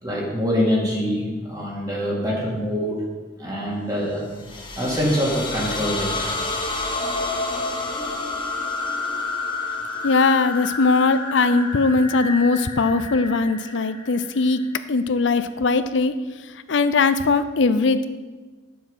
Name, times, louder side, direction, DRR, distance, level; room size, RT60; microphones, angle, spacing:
voice 1, 0.0-3.0 3.4-4.3 4.8-6.3, equal, 20° right, -3 dB, 2.4 m, -24 dB
sound 1, 4.2-14.9, left 3 dB, 25° left, 1.4 m, -29 dB
voice 2, 10.0-14.6 14.9-16.1 16.7-18.1, left 3 dB, 80° left, 12 dB, 0.6 m, -20 dB
10.0 x 6.8 x 5.6 m, 1.3 s
head